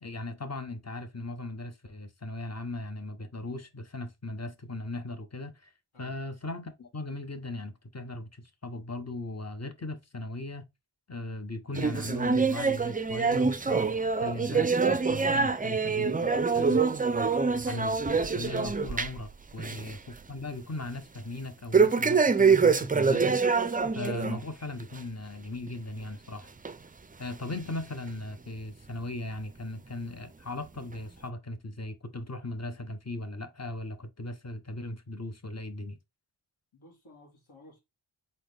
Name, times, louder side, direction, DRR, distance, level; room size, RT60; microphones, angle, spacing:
voice 1, 0.0-5.7 6.0-10.7 11.1-16.8 17.7-23.4 23.9-26.5 27.2-36.0, left 2 dB, 30° left, 0.9 m, -38 dB
sound 1, 11.7-19.3 19.6-19.9 20.3-20.4 21.7-24.4 24.8-25.0 25.7-25.8 26.6-26.7 27.5-27.6, right 5 dB, 20° right, 0.3 m, -25 dB
voice 2, 18.1-18.5 36.7-37.8, left 1 dB, 75° left, 2.7 m, -55 dB
4.1 x 3.9 x 3.3 m
wide cardioid pair, 90°, 49 cm